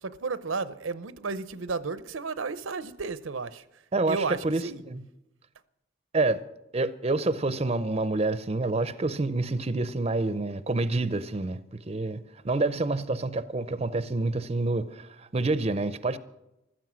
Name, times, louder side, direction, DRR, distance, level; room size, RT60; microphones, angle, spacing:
voice 1, 0.0-3.8 4.1-4.8, right 4 dB, 85° right, 0.7 m, -33 dB
voice 2, 3.9-4.6 4.9-5.0 6.1-6.4 6.7-16.2, right 2 dB, 30° right, 0.6 m, -28 dB
15.0 x 13.0 x 6.2 m
head